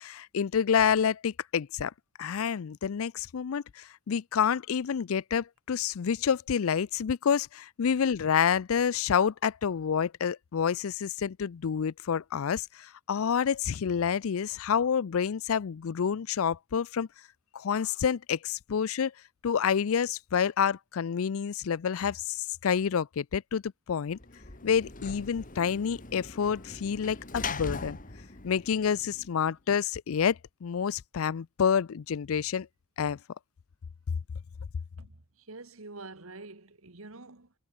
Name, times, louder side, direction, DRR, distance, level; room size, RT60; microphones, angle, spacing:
voice 1, 0.0-1.9 2.2-17.1 17.5-19.1 19.4-23.6 23.9-24.2 24.6-28.0 28.4-32.7 33.0-33.2, left 7 dB, 75° left, 0.4 m, -28 dB
Sliding door / Slam, 24.1-29.5, left 4 dB, 40° left, 2.4 m, -41 dB
voice 2, 35.0-37.5, right 3 dB, 75° right, 1.9 m, -47 dB
head